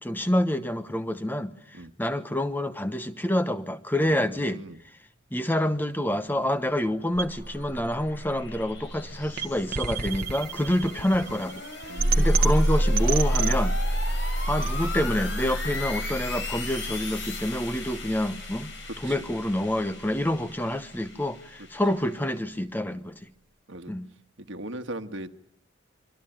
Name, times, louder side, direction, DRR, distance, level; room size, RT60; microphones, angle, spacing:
voice 1, 0.0-4.6 5.3-11.6 12.2-13.8 14.5-23.3 23.9-24.1, left 1 dB, 10° left, 1.1 m, -27 dB
voice 2, 4.0-4.8 10.7-10.8 11.9-12.6 19.0-19.1 23.7-23.9 24.5-25.3, right 1 dB, 70° right, 1.6 m, -39 dB
sound 1, 6.9-22.4, left 3 dB, 65° left, 5.6 m, -39 dB
sound 2, 7.2-19.2, right 1 dB, 45° right, 1.2 m, -28 dB
27.0 x 24.0 x 9.1 m
head